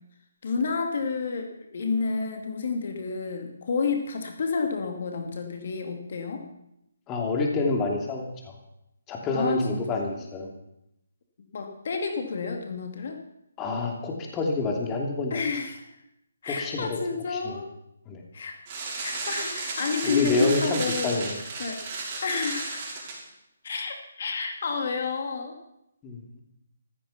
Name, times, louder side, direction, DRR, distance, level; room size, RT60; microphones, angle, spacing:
voice 1, 0.4-6.4 9.3-10.1 11.5-13.2 15.3-15.9 16.4-17.7 18.3-18.6 19.0-21.1 21.6-21.8 22.2-22.8 23.6-25.6, left 5 dB, 55° left, 4 dB, 2.4 m, -30 dB
voice 2, 7.1-8.5 9.1-10.5 13.6-15.4 16.5-17.0 17.3-17.6 18.1-18.2 20.0-21.4 26.0-26.2, left 3 dB, 20° left, 1 dB, 2.8 m, -28 dB
sound 1, 18.7-23.2, right 3 dB, 30° right, 6.1 m, -33 dB
15.0 x 14.0 x 5.8 m, 0.82 s
figure-of-eight pair, 150°, 0 cm